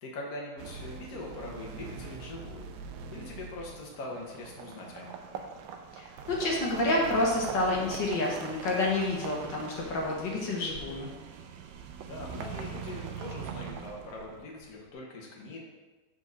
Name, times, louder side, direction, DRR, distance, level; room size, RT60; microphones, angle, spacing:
voice 1, 0.0-2.7 3.1-5.1 12.0-15.7, left 2 dB, 55° left, -2 dB, 1.5 m, -42 dB
sound 1, 0.6-3.9 6.2-8.2, right 4 dB, 70° right, 1.0 m, -44 dB
sound 2, 3.8-14.7, right 7 dB, 90° right, 1.3 m, -42 dB
voice 2, 6.0-11.1, left 2 dB, 70° left, -2 dB, 1.8 m, -29 dB
4.7 x 4.7 x 6.1 m, 1.2 s
omnidirectional pair, 2.0 m